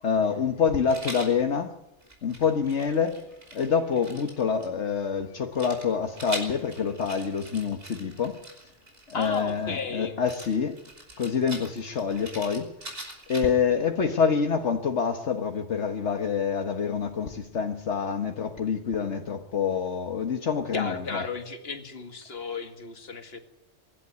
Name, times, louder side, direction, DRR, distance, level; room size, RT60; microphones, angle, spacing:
voice 1, 0.0-1.8 2.2-3.2 3.5-8.4 9.1-10.8 11.2-12.7 13.3-21.2, left 6 dB, 75° left, 1.6 m, -26 dB
Rattle, 0.9-1.3 2.0-4.7 5.6-9.6 10.2-13.7, right 1 dB, 55° right, 5.5 m, -42 dB
voice 2, 9.1-10.1 20.7-23.4, left 4 dB, 55° left, 2.2 m, -34 dB
24.0 x 12.0 x 9.5 m
omnidirectional pair, 1.2 m